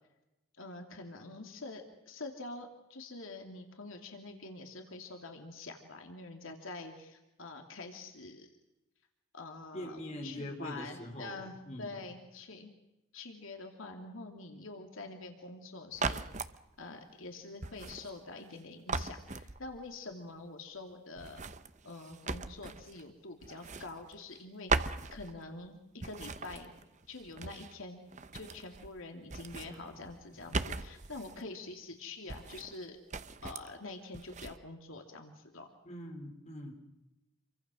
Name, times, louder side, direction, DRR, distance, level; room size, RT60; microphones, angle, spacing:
voice 1, 0.6-8.5 9.3-12.7 13.1-16.5 16.8-21.4 21.8-26.7 27.1-28.0 28.3-33.0 33.4-35.7, left 3 dB, 70° left, 4 dB, 2.8 m, -46 dB
voice 2, 9.7-12.0 35.8-36.7, left 1 dB, 30° left, 3 dB, 4.1 m, -43 dB
sound 1, 15.9-16.6 17.6-18.6 18.9-19.9 21.2-23.1 23.4-24.4 24.7-25.7 26.0-27.8 28.1-29.0 29.2-31.4 32.3-32.8 33.1-33.7 34.1-34.6, right 4 dB, 35° right, 0.8 m, -39 dB
28.0 x 24.0 x 6.3 m, 0.96 s
head